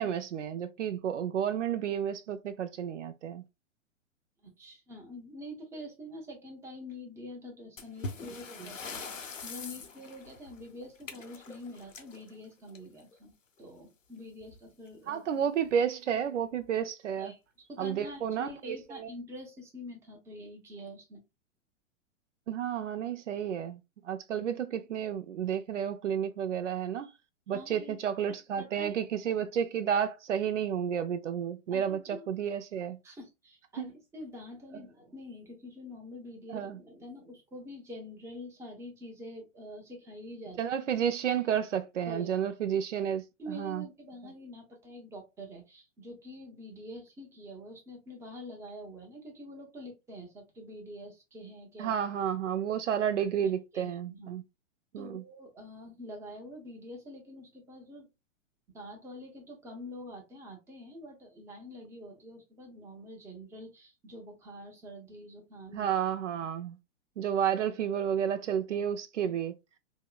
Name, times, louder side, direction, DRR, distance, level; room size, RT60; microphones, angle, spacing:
voice 1, 0.0-3.4 8.6-8.7 15.1-17.3 17.8-19.1 22.5-23.8 24.0-27.1 27.5-33.0 33.8-33.9 36.5-36.8 40.6-43.2 43.5-43.8 51.8-54.4 54.9-55.2 65.7-66.8 67.2-69.5, right 8 dB, 75° right, 0.5 m, -31 dB
voice 2, 4.4-8.9 9.2-13.3 13.6-15.3 17.2-17.4 17.7-21.2 27.5-28.0 28.6-28.9 31.7-32.2 33.0-40.6 42.0-42.3 43.4-51.9 53.7-54.3 55.0-58.1 58.7-65.9 68.7-68.8 69.2-69.3, left 1 dB, 5° right, 0.6 m, -46 dB
sound 1, 7.8-13.2 14.4-14.6 14.9-15.0 15.6-15.7 16.4-16.7, left 4 dB, 90° left, 0.7 m, -43 dB
3.6 x 2.0 x 2.2 m
figure-of-eight pair, 110°, 37 cm